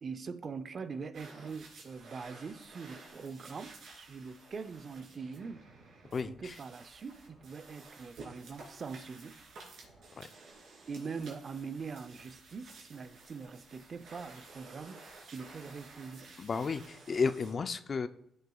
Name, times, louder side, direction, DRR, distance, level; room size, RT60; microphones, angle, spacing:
voice 1, 0.0-5.6 6.3-9.4 10.9-16.3, right 5 dB, 40° right, 12 dB, 0.6 m, -43 dB
sound 1, 1.1-17.5, right 3 dB, 70° right, 3.1 m, -53 dB
voice 2, 6.1-6.6 10.1-10.3 16.4-18.1, left 5 dB, 40° left, 11 dB, 0.4 m, -33 dB
14.5 x 6.5 x 2.3 m, 0.75 s
cardioid pair, 90°, 0 cm